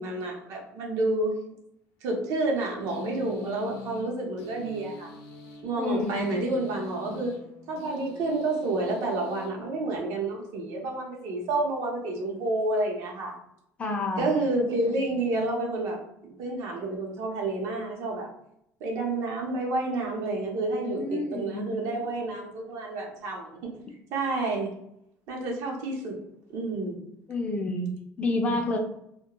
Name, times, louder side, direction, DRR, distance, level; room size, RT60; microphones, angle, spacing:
voice 1, 0.0-1.4 2.0-5.1 5.6-7.4 7.7-13.3 14.2-18.3 18.8-23.7 24.1-24.7 25.3-26.2 26.5-27.0 28.5-28.8, right 2 dB, 70° right, 0 dB, 0.7 m, -29 dB
sound 1, 2.9-10.3, left 5 dB, 75° left, 0.6 m, -44 dB
voice 2, 5.8-6.3 13.8-14.4 20.8-21.7 27.3-28.8, left 2 dB, 25° left, 3 dB, 0.4 m, -29 dB
2.2 x 2.2 x 2.9 m, 0.76 s
cardioid pair, 145°, 6 cm